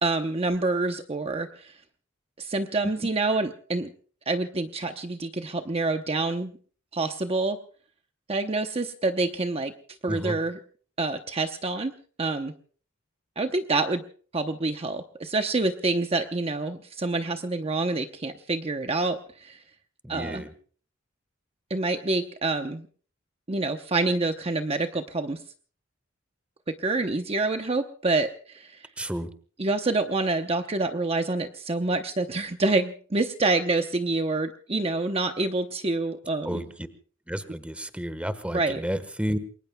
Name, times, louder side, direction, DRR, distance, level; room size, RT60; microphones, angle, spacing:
voice 1, 0.0-1.7 2.4-3.9 4.3-6.5 6.9-7.6 8.3-9.7 10.0-10.6 11.0-11.9 12.2-12.5 13.4-14.0 14.3-19.6 20.1-20.4 21.7-22.9 23.5-25.4 26.7-28.8 29.6-36.6 38.5-38.8, right 3 dB, 30° right, 6 dB, 0.8 m, -27 dB
voice 2, 10.1-10.4 20.0-20.5 29.0-29.3 36.4-36.9 37.3-39.4, equal, 5° right, 12 dB, 1.2 m, -31 dB
28.5 x 22.0 x 2.3 m, 0.43 s
head